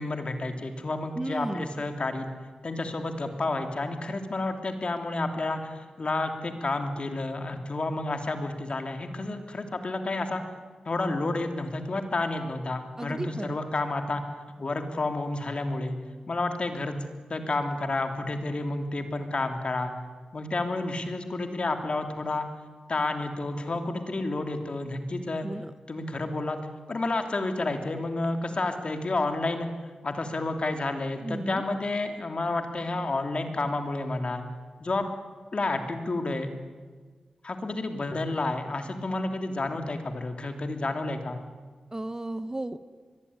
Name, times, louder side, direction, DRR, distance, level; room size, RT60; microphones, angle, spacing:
voice 1, 0.0-2.3 2.6-10.4 10.8-14.2 14.6-15.9 16.3-17.0 17.3-19.9 20.3-22.5 22.9-25.5 25.9-26.6 26.9-29.7 30.0-34.4 34.8-35.1 35.5-36.5 37.4-41.4, left 2 dB, 55° left, 6 dB, 3.1 m, -30 dB
voice 2, 1.1-1.8 13.0-13.6 25.4-25.7 31.2-31.6 41.9-42.9, right 1 dB, 25° right, 12 dB, 1.2 m, -34 dB
23.0 x 21.0 x 9.7 m, 1.5 s
cardioid pair, 50°, 2 cm